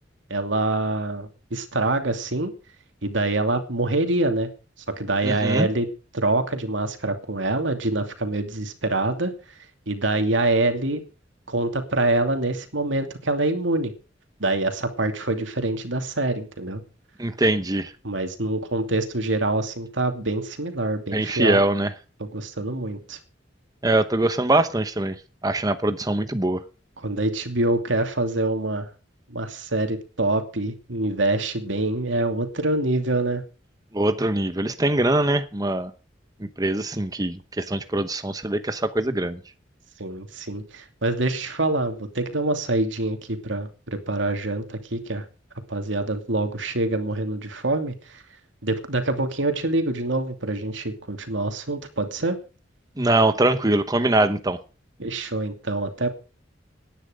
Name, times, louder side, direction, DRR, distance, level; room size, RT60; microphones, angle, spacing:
voice 1, 0.3-2.5 3.0-4.5 5.0-5.9 6.1-9.3 9.9-11.0 11.5-13.9 14.4-16.8 18.0-21.6 22.2-23.2 27.0-28.9 29.3-33.4 40.0-45.2 45.7-48.2 48.6-52.4 55.0-56.1, right 2 dB, 85° right, 6 dB, 2.7 m, -25 dB
voice 2, 5.2-5.7 17.2-17.9 21.1-21.9 23.8-25.1 25.4-26.6 33.9-35.9 36.4-39.4 53.0-54.6, right 2 dB, 20° right, 10 dB, 0.9 m, -22 dB
18.5 x 10.0 x 5.1 m, 0.35 s
head